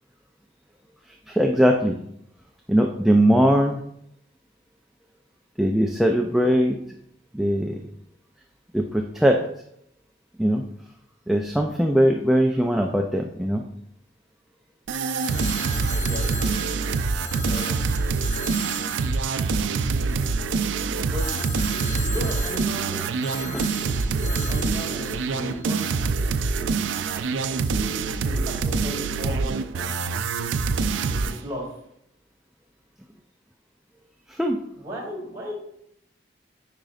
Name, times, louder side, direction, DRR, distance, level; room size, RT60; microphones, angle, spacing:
voice 1, 1.3-2.0 2.7-3.8 5.6-6.8 7.3-7.8 8.7-9.4 10.4-10.6 11.3-13.6 23.5-23.6 34.3-34.6, equal, ahead, 1 dB, 0.3 m, -20 dB
sound 1, 14.9-31.4, right 4 dB, 85° right, 0.4 m, -25 dB
Telephone, 15.2-20.4 21.2-26.0, equal, 20° left, 0.9 m, -38 dB
voice 2, 16.0-16.5 17.4-17.8 21.0-21.3 21.9-23.0 24.0-25.9 27.6-29.9 31.1-31.7 34.7-35.5, equal, 20° right, -5 dB, 2.2 m, -36 dB
8.9 x 5.1 x 2.4 m, 0.75 s
head